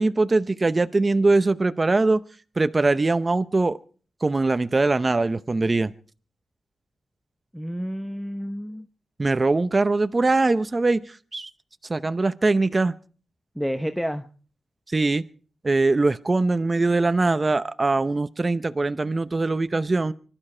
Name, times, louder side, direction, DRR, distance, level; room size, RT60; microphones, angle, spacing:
voice 1, 0.0-2.2 2.6-3.8 4.2-5.9 9.2-11.5 11.9-12.9 14.9-15.2 15.6-20.1, right 3 dB, 30° right, 0.7 m, -22 dB
voice 2, 7.5-8.9 13.5-14.3, equal, ahead, 0.9 m, -29 dB
25.0 x 12.0 x 4.4 m
cardioid pair, 85°, 0 cm